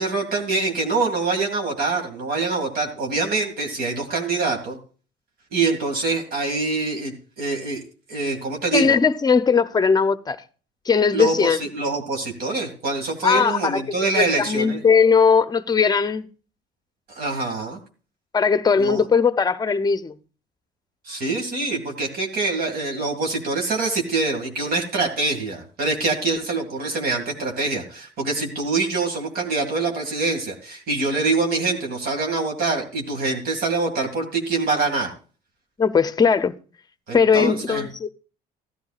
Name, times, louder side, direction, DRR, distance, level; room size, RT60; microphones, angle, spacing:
voice 1, 0.0-4.8 5.5-7.8 8.1-9.0 11.1-14.8 17.1-17.8 18.8-19.0 21.0-35.1 37.1-37.9, right 3 dB, 65° right, 2.3 m, -25 dB
voice 2, 8.7-10.4 10.9-11.6 13.2-13.8 14.2-16.3 18.3-20.1 35.8-36.5 37.1-38.1, left 5 dB, 25° left, 0.6 m, -19 dB
15.0 x 11.5 x 2.4 m
cardioid pair, 110°, 17 cm